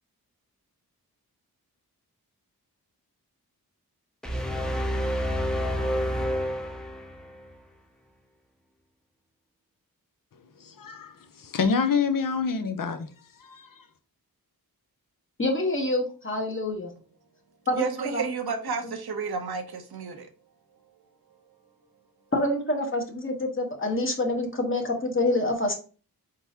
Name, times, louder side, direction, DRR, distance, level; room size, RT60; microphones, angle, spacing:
sound 1, 4.2-7.4, equal, ahead, 0.6 m, -28 dB
voice 1, 10.6-13.1 13.4-13.9, left 5 dB, 60° left, 0.7 m, -27 dB
voice 2, 15.4-16.9 17.7-18.2 18.8-18.9 22.3-25.7, left 2 dB, 35° left, 1.1 m, -27 dB
voice 3, 17.7-20.3, right 5 dB, 85° right, 0.8 m, -31 dB
4.6 x 3.8 x 2.8 m
wide cardioid pair, 85°, 37 cm